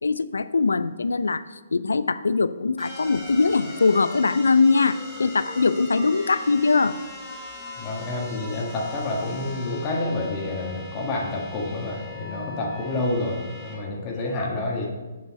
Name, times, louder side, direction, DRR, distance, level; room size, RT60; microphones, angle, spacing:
voice 1, 0.0-1.4 1.7-7.0, left 4 dB, 75° left, 15 dB, 0.4 m, -21 dB
sound 1, 2.8-13.8, left 2 dB, 5° left, 2.1 m, -39 dB
voice 2, 7.8-14.9, left 2 dB, 25° left, -2 dB, 1.6 m, -28 dB
7.0 x 5.5 x 5.4 m, 1.2 s
figure-of-eight pair, 130°, 0 cm